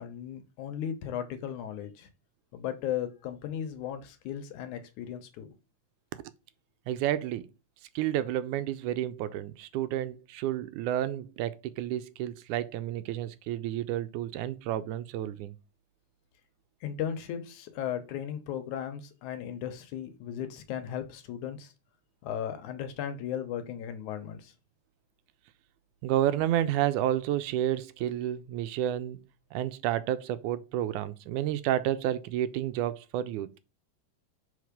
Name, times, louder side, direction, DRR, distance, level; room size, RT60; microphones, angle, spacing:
voice 1, 0.0-2.1 2.5-5.5 16.8-21.7 22.2-24.5, left 9 dB, 75° left, 2.3 m, -36 dB
voice 2, 6.9-7.5 8.0-15.6 26.0-29.2 29.5-33.5, right 12 dB, 80° right, 2.0 m, -30 dB
6.4 x 4.7 x 5.1 m
omnidirectional pair, 3.7 m